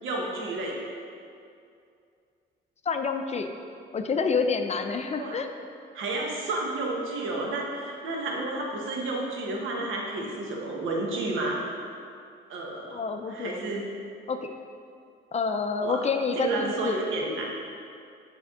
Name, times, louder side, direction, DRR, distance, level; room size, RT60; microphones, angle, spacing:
voice 1, 0.0-0.8 5.2-5.4 5.9-11.6 12.5-13.0 13.3-13.9 15.8-16.0 16.3-17.5, right 2 dB, 85° right, -1 dB, 1.1 m, -31 dB
voice 2, 2.9-3.5 3.9-5.5 12.9-13.5 14.3-14.5 15.3-17.0, left 5 dB, 35° left, 6 dB, 0.4 m, -28 dB
9.2 x 3.5 x 3.6 m, 2.4 s
cardioid pair, 90°, 20 cm